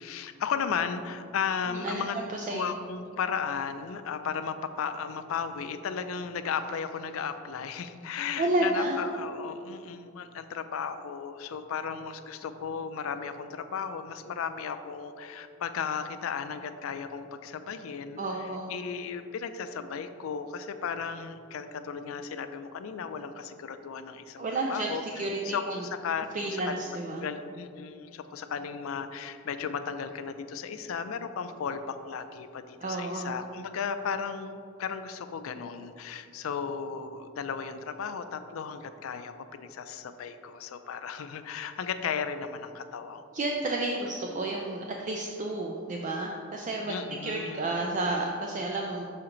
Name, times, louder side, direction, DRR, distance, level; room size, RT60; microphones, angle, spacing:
voice 1, 0.0-2.2 2.5-43.2 46.9-47.7, left 6 dB, 85° left, 10 dB, 0.4 m, -35 dB
voice 2, 1.7-2.6 8.4-9.0 18.2-18.7 24.4-25.8 26.3-27.3 32.8-33.4 43.3-46.9 47.2-49.0, right 2 dB, 40° right, 0 dB, 0.4 m, -31 dB
6.3 x 4.5 x 3.8 m, 2.4 s
head